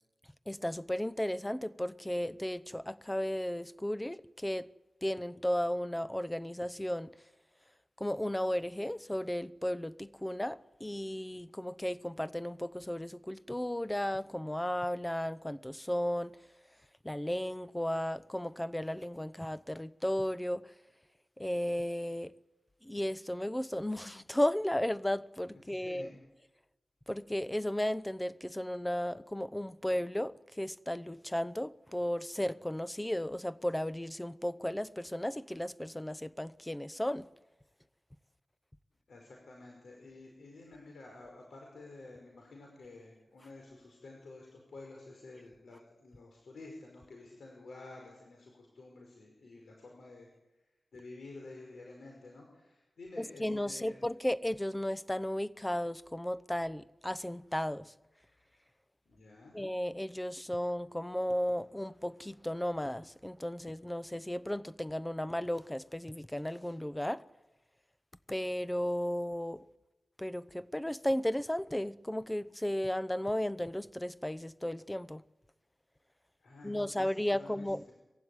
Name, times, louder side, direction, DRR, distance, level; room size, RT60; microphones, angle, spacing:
voice 1, 0.5-4.7 5.0-7.1 8.0-16.4 17.0-20.7 21.4-22.3 22.8-26.1 27.1-37.3 53.2-57.9 59.5-67.2 68.3-69.6 70.2-75.2 76.6-77.8, left 1 dB, 10° left, 0.8 m, -34 dB
voice 2, 25.7-26.1 39.1-50.3 50.9-54.0 59.0-59.6 76.4-77.9, left 2 dB, 85° left, 5.0 m, -51 dB
22.5 x 15.5 x 9.6 m
wide cardioid pair, 100°, 0 cm